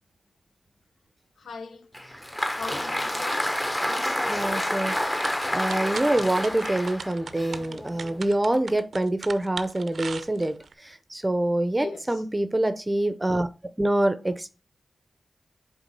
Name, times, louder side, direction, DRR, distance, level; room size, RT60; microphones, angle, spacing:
voice 1, 1.4-1.9 2.6-3.6 11.8-12.2, left 4 dB, 85° left, 0.8 m, -39 dB
Applause, 1.9-8.2, left 1 dB, 15° left, 0.8 m, -29 dB
voice 2, 4.3-13.5 13.8-14.5, right 1 dB, 20° right, 0.6 m, -26 dB
sound 1, 4.9-10.7, right 5 dB, 75° right, 0.5 m, -39 dB
5.1 x 3.8 x 5.3 m
cardioid pair, 70°, 0 cm